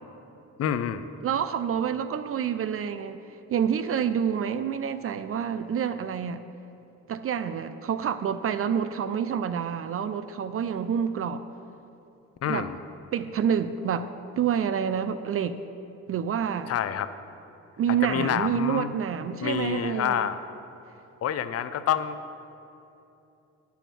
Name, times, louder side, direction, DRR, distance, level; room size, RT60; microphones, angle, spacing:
voice 1, 0.6-1.1 12.4-12.8 16.7-17.1 17.9-18.9 19.4-20.4 21.2-22.2, left 9 dB, 55° left, 13 dB, 0.5 m, -28 dB
voice 2, 1.2-3.2 3.5-6.4 7.1-11.4 12.4-12.7 13.1-14.1 14.4-15.6 16.1-16.7 17.8-20.3, right 8 dB, 50° right, 12 dB, 0.4 m, -28 dB
10.0 x 7.1 x 6.0 m, 2.9 s
cardioid pair, 90°, 30 cm